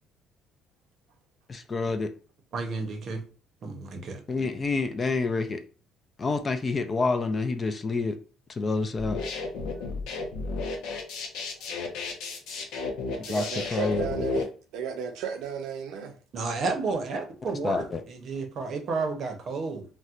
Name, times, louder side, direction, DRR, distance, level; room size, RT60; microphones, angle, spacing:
voice 1, 1.5-2.1 4.3-5.6 6.2-8.2 8.6-9.2 13.3-14.1 17.6-18.0, left 3 dB, 25° left, 0.3 m, -28 dB
voice 2, 2.5-3.2 3.6-4.2 16.3-19.9, right 4 dB, 50° right, 0.7 m, -31 dB
sound 1, 9.0-14.4, left 4 dB, 85° left, 0.6 m, -33 dB
voice 3, 13.2-16.1, right 7 dB, 85° right, 0.5 m, -34 dB
4.1 x 2.1 x 2.4 m
cardioid pair, 140°, 0 cm